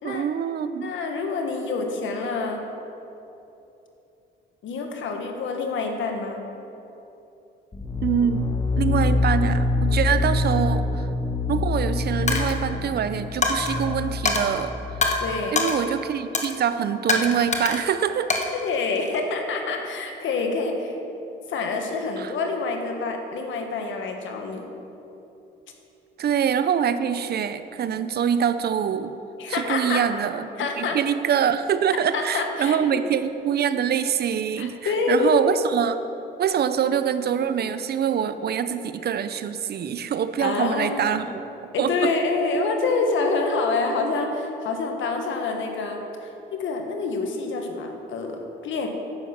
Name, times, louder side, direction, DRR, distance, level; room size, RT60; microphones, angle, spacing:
voice 1, 0.0-0.9 8.0-11.1 11.5-14.8 15.5-18.3 22.2-22.3 26.2-29.2 29.5-36.0 36.4-41.4 41.8-42.1, right 8 dB, 55° right, 11 dB, 0.6 m, -25 dB
voice 2, 0.8-2.6 4.6-6.4 15.2-15.6 18.5-21.0 21.5-24.7 29.4-30.0 30.6-31.0 32.1-33.0 34.6-35.4 40.4-41.2 41.7-48.9, left 4 dB, 75° left, 3 dB, 1.4 m, -27 dB
sound 1, 7.7-15.4, left 3 dB, 20° left, 0.8 m, -25 dB
Coin (dropping), 12.3-12.6 13.4-13.8 14.3-14.5 15.0-15.2 15.6-15.8 16.3-16.6 17.1-17.9 18.3-19.2, left 3 dB, 35° left, 1.3 m, -24 dB
10.5 x 7.6 x 5.9 m, 3.0 s
cardioid pair, 90°, 20 cm